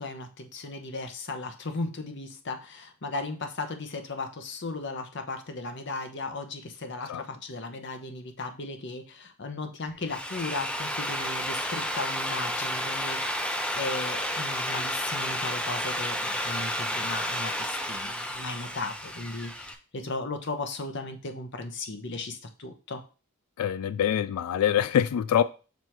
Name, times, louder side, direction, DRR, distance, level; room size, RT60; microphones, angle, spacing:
voice 1, 0.0-23.0, left 3 dB, 55° left, 0.8 m, -36 dB
Drill, 9.9-19.7, equal, 5° left, 0.4 m, -31 dB
voice 2, 23.6-25.4, left 9 dB, 85° left, 0.3 m, -24 dB
6.2 x 3.4 x 4.4 m
head